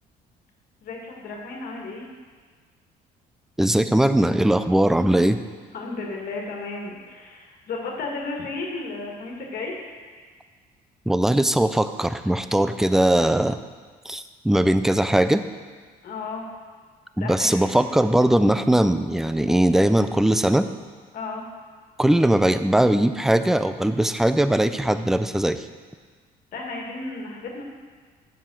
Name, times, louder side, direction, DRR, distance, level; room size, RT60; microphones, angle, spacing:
voice 1, 0.8-2.1 5.1-5.2 5.7-9.7 16.0-16.5 17.2-17.9 21.1-21.5 26.5-27.6, left 3 dB, 60° left, -1 dB, 1.9 m, -33 dB
voice 2, 3.6-5.4 11.1-13.6 14.1-15.4 17.2-20.7 22.0-25.6, right 1 dB, ahead, 11 dB, 0.4 m, -20 dB
7.3 x 7.0 x 6.2 m, 1.5 s
cardioid pair, 110°, 17 cm